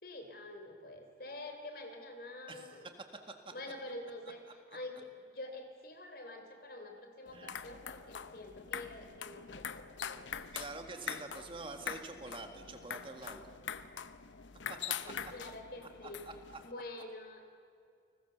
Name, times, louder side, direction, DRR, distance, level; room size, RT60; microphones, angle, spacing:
voice 1, 0.0-2.9 3.5-10.3 13.6-13.9 15.0-16.2 16.6-17.5, left 2 dB, 55° left, 5 dB, 3.5 m, -47 dB
voice 2, 2.5-2.9 3.3-3.5 7.3-7.6 10.5-13.6 14.7-14.9 16.0-16.1, right 3 dB, 30° right, 5 dB, 1.7 m, -46 dB
sound 1, 7.3-16.7, left 7 dB, 80° left, 0.8 m, -44 dB
29.5 x 20.0 x 6.9 m, 2.4 s
head